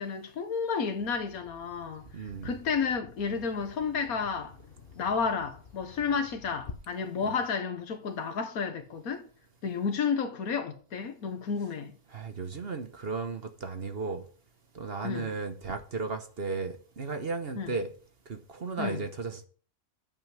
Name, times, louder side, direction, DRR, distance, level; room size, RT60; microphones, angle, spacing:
voice 1, 0.0-2.0 2.4-4.6 5.0-9.3 9.6-11.9 15.0-15.3 17.6-17.7 18.8-19.0, left 5 dB, 70° left, 1.6 m, -31 dB
Bird vocalization bird call bird song, 1.0-6.7, left 6 dB, 40° left, 1.0 m, -50 dB
voice 2, 2.1-2.6 12.1-14.2 14.7-17.9 18.3-19.5, right 4 dB, 45° right, 1.2 m, -35 dB
9.1 x 5.4 x 7.6 m
omnidirectional pair, 1.6 m